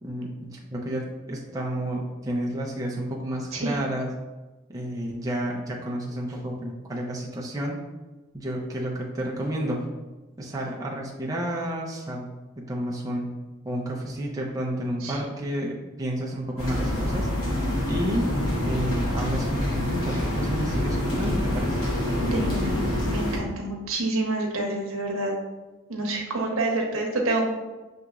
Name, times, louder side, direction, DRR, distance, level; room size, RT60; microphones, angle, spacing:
voice 1, 0.0-4.1 4.7-7.8 8.3-9.8 10.4-12.3 12.6-13.3 13.6-17.3 17.9-18.3 18.6-21.8, right 1 dB, 15° right, -3 dB, 0.5 m, -30 dB
sound 1, 16.6-23.4, left 1 dB, 90° left, 1.1 m, -26 dB
voice 2, 22.2-25.3 25.9-27.4, right 2 dB, 80° right, 1 dB, 0.8 m, -28 dB
6.4 x 2.9 x 2.4 m, 1.1 s
head